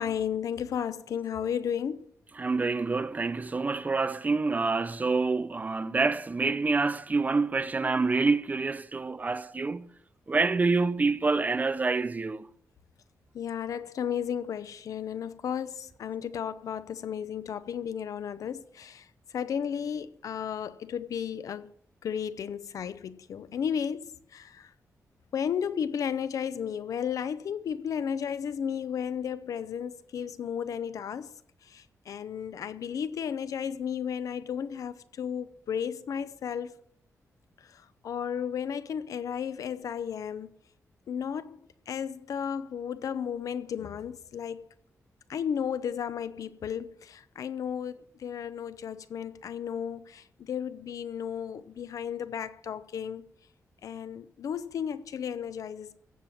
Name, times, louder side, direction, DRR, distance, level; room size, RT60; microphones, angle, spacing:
voice 1, 0.0-2.1 13.3-19.0 19.3-21.7 22.0-24.7 25.3-31.3 31.7-36.8 38.0-40.5 41.1-41.6 41.9-44.6 45.3-53.2 53.8-56.0, left 8 dB, 75° left, 0.7 m, -34 dB
voice 2, 2.4-9.9 10.3-12.5, right 3 dB, 30° right, 0.6 m, -27 dB
16.0 x 7.5 x 7.2 m
wide cardioid pair, 110°, 6 cm